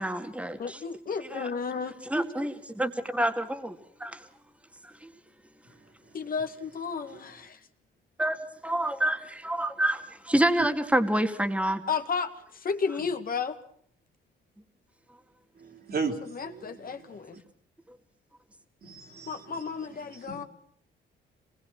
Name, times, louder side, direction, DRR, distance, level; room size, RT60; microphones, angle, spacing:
voice 1, 0.0-0.8 1.3-1.5 2.1-4.2 4.8-5.1 8.2-8.4 8.6-11.8, right 1 dB, 5° right, 2.3 m, -28 dB
voice 2, 0.6-2.0 6.1-7.6 11.9-13.6 16.3-17.4 19.3-20.4, left 5 dB, 45° left, 2.1 m, -33 dB
voice 3, 15.6-16.9 18.8-19.6 20.3-20.4, right 4 dB, 50° right, 3.7 m, -35 dB
26.5 x 21.0 x 6.1 m
cardioid pair, 90°, 20 cm